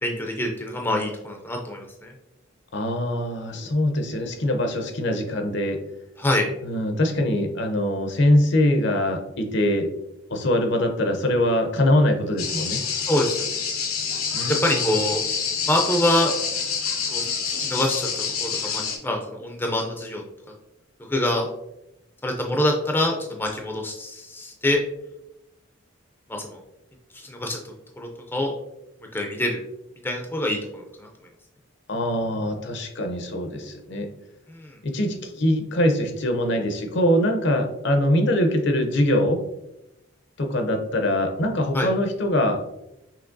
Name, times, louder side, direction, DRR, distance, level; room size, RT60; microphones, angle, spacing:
voice 1, 0.0-2.1 6.2-6.5 13.0-13.6 14.5-15.2 15.6-16.3 17.1-20.2 20.5-20.6 21.1-21.5 22.2-24.8 26.3-26.6 27.1-27.6 28.0-28.5 29.1-29.6 30.0-31.1 34.5-34.8 41.7-41.9, left 1 dB, 10° left, 1 dB, 0.4 m, -25 dB
voice 2, 2.7-5.8 6.6-9.9 10.3-12.8 14.3-14.8 31.9-34.1 34.8-39.4 40.4-42.6, left 1 dB, 55° left, 4 dB, 0.6 m, -23 dB
sound 1, 12.4-19.0, left 6 dB, 85° left, 0.9 m, -27 dB
5.8 x 3.1 x 2.6 m, 0.86 s
head